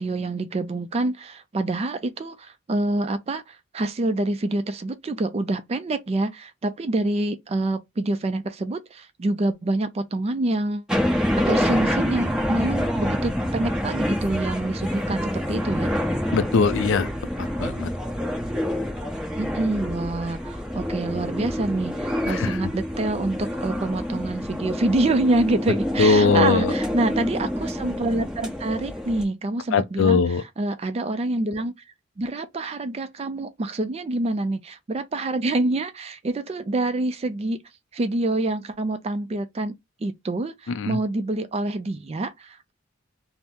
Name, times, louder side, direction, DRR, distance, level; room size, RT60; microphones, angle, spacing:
voice 1, 0.0-15.9 19.4-30.2 30.6-31.7 32.2-37.6 37.9-39.7 40.0-42.7, right 2 dB, 30° right, 0.3 m, -26 dB
sound 1, 10.9-29.2, equal, 5° right, 0.7 m, -27 dB
voice 2, 16.3-17.1 17.6-17.9 22.3-22.6 26.0-26.7 29.7-30.4 40.7-41.0, left 4 dB, 60° left, 0.3 m, -20 dB
2.8 x 2.0 x 3.4 m
head